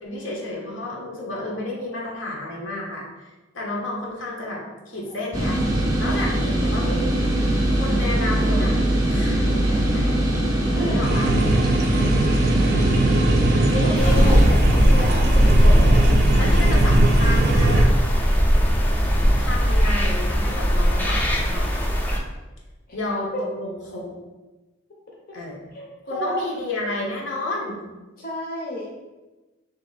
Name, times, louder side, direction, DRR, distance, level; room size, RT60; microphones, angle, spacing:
voice 1, 0.0-3.1 3.5-5.6 6.0-7.1 7.7-8.8 9.1-10.2 10.8-11.3 13.7-14.5 16.4-17.9 19.4-21.7 22.9-24.1 25.3-25.6 26.1-27.8, left 2 dB, 80° left, -3 dB, 1.0 m, -31 dB
sound 1, 5.3-14.4, right 1 dB, 15° right, 0.8 m, -21 dB
sound 2, 11.0-17.9, right 2 dB, 55° right, 0.4 m, -22 dB
voice 2, 13.6-16.6 22.9-23.0 23.3-23.4 25.7-26.4 28.2-28.9, equal, 50° left, -3 dB, 0.8 m, -32 dB
sound 3, 13.9-22.2, equal, 10° left, 0.4 m, -18 dB
3.5 x 2.8 x 4.0 m, 1.1 s
head